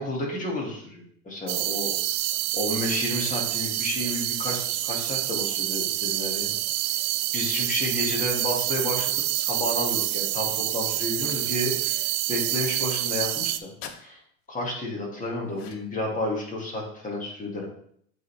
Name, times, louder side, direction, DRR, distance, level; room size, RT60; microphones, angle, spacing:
voice 1, 0.0-1.9 2.5-6.5 7.3-13.7 14.0-14.2 14.5-17.7, left 1 dB, 20° left, -2 dB, 2.3 m, -31 dB
sound 1, 1.5-13.6, right 16 dB, 60° right, 0.5 m, -27 dB
sound 2, 11.2-11.6 13.8-14.0 15.5-16.0, left 8 dB, 60° left, 0.9 m, -43 dB
7.6 x 4.1 x 3.4 m, 0.65 s
hypercardioid pair, 105°, 43 cm